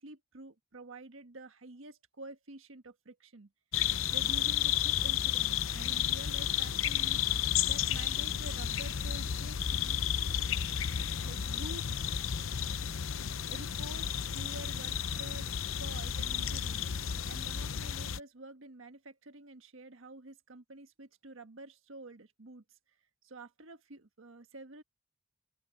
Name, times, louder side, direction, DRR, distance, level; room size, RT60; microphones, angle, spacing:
voice 1, 0.0-3.5 4.1-10.0 11.2-11.9 13.5-15.5 15.8-16.8 17.3-22.6 23.2-24.8, right 2 dB, 80° right, 1.5 m, -49 dB
sound 1, 3.7-18.2, left 9 dB, 80° left, 0.7 m, -32 dB
open air
head